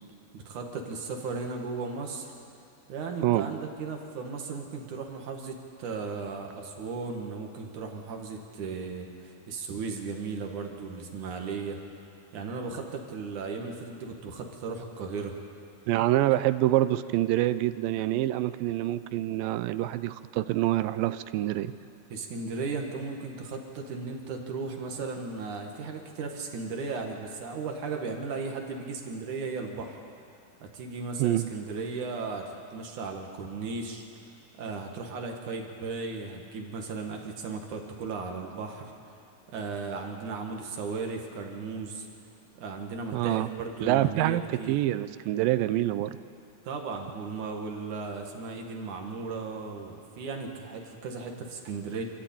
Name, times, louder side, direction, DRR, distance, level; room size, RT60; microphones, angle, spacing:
voice 1, 0.3-2.3 2.9-11.8 12.3-15.4 22.1-30.0 30.6-34.0 34.5-38.9 39.5-42.1 42.6-44.8 46.6-52.0, right 4 dB, 60° right, 2 dB, 2.8 m, -36 dB
voice 2, 15.9-21.7 31.2-31.5 43.1-43.5 43.8-46.2, right 15 dB, 80° right, 13 dB, 2.1 m, -26 dB
26.0 x 14.0 x 8.6 m, 2.6 s
omnidirectional pair, 4.5 m